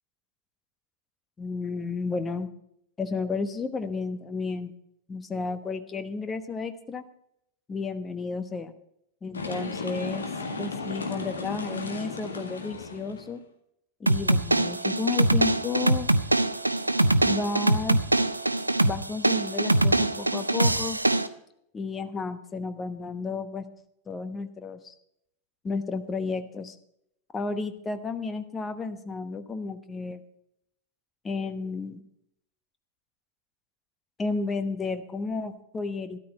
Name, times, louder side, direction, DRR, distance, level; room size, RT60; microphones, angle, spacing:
voice 1, 1.4-2.5 3.0-4.7 5.1-7.0 7.7-8.8 9.2-10.3 10.6-13.4 14.0-16.1 17.2-18.0 18.9-21.0 21.7-23.6 24.1-24.9 25.6-26.8 27.3-30.2 31.2-32.0 34.2-36.2, left 4 dB, 20° left, 10 dB, 1.1 m, -32 dB
sound 1, 9.3-13.3, left 4 dB, 75° left, 1.8 m, -34 dB
sound 2, 14.1-21.3, right 2 dB, 85° right, 0.6 m, -23 dB
13.0 x 12.5 x 4.2 m, 0.74 s
figure-of-eight pair, 90°, 0 cm